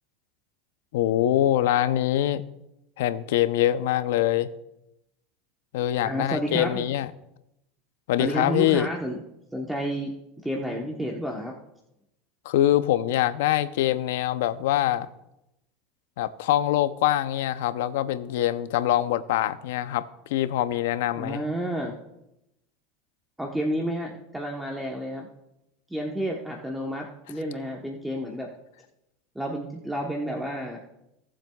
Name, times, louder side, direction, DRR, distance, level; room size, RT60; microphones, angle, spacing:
voice 1, 0.9-2.4 3.0-4.5 5.7-7.1 8.1-8.9 12.4-15.1 16.2-21.4, left 12 dB, 80° left, 0.6 m, -24 dB
voice 2, 6.0-6.8 8.2-9.2 9.5-10.1 10.4-11.5 21.1-21.9 23.4-25.3 25.9-28.5 29.3-30.8, equal, 5° right, 1.1 m, -30 dB
18.0 x 7.4 x 2.3 m
supercardioid pair, 130°, 0 cm